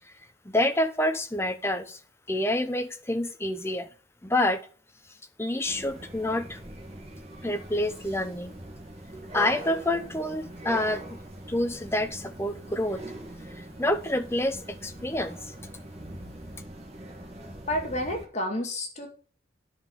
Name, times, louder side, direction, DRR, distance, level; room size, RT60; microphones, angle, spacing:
voice 1, 0.4-2.0 2.3-3.9 4.2-4.6 5.4-6.6 7.4-8.6 9.3-11.0 11.5-13.0 13.5-15.5, left 1 dB, 15° left, 7 dB, 0.9 m, -28 dB
sound 1, 5.6-18.2, right 1 dB, 35° right, 2.0 m, -42 dB
voice 2, 17.7-19.1, left 1 dB, 35° left, 2 dB, 2.2 m, -30 dB
10.5 x 5.6 x 6.4 m, 0.39 s
head